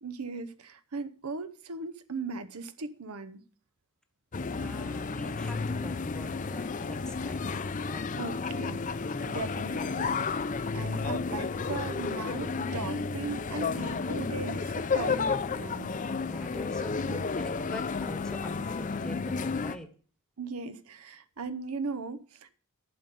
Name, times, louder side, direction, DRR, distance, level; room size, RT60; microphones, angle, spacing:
voice 1, 0.0-3.4 8.2-10.3 10.7-15.9 17.0-17.2 20.4-22.5, right 4 dB, 80° right, 0.8 m, -38 dB
sound 1, 4.3-19.8, left 4 dB, 35° left, 0.5 m, -32 dB
voice 2, 4.5-7.4 7.9-8.1 16.2-19.9, left 1 dB, 5° left, 1.1 m, -45 dB
11.0 x 5.3 x 8.4 m
head